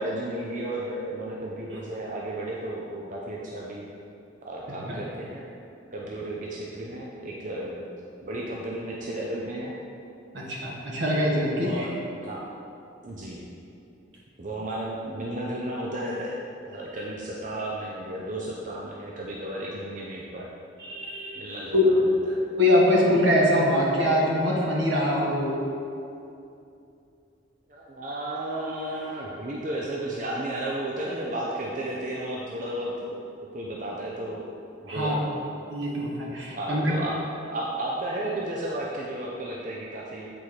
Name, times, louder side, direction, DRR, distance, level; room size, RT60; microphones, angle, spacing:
voice 1, 0.0-3.8 4.4-5.4 5.9-7.8 8.2-9.7 11.6-11.9 12.2-12.4 13.0-13.4 14.4-16.4 16.6-20.5 21.3-22.4 27.7-33.2 33.5-34.4 34.8-35.4 36.5-37.1 37.4-40.3, right 1 dB, 40° right, -4 dB, 0.6 m, -33 dB
voice 2, 10.3-11.9 20.8-21.4 21.7-21.8 22.6-25.5 34.9-35.2 35.7-37.0, left 1 dB, 75° right, -4 dB, 1.6 m, -23 dB
8.2 x 4.4 x 4.8 m, 2.7 s
head